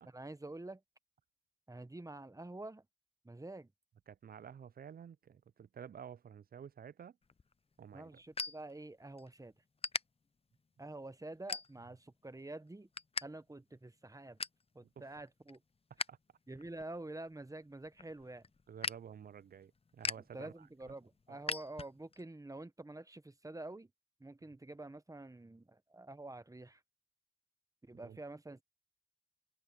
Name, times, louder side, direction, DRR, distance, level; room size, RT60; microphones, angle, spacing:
voice 1, 0.1-0.8 1.7-2.8 3.2-3.7 7.9-9.5 10.8-12.9 13.2-14.4 14.7-15.6 16.5-18.4 20.3-23.9 24.2-26.8 27.8-28.6, right 2 dB, 20° right, 1.0 m, -48 dB
voice 2, 4.1-7.2 7.8-8.2 14.8-15.1 16.1-16.2 18.7-20.9 21.3-21.4 28.0-28.2, right 8 dB, 65° right, 0.4 m, -52 dB
sound 1, 7.2-9.3 9.6-10.0 10.6-10.8 11.4-12.1 12.4-13.3 13.5-13.6 14.0-14.7 15.1-16.1 16.5-22.2, left 4 dB, 35° left, 0.5 m, -42 dB
open air
cardioid pair, 55°, 17 cm